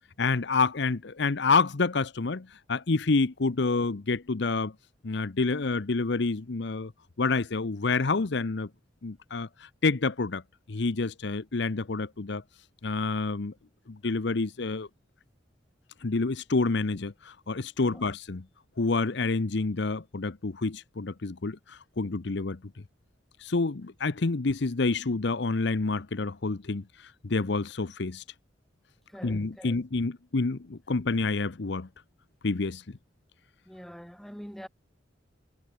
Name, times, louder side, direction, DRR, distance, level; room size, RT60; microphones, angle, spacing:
voice 1, 0.2-4.7 5.0-6.9 7.2-8.7 9.0-10.4 10.7-12.4 12.8-13.5 13.9-14.9 16.0-18.4 18.8-22.6 23.4-28.2 29.2-31.9 32.4-32.8, left 3 dB, 65° left, 0.8 m, -28 dB
voice 2, 29.1-29.8 33.6-34.7, equal, ahead, 3.4 m, -44 dB
head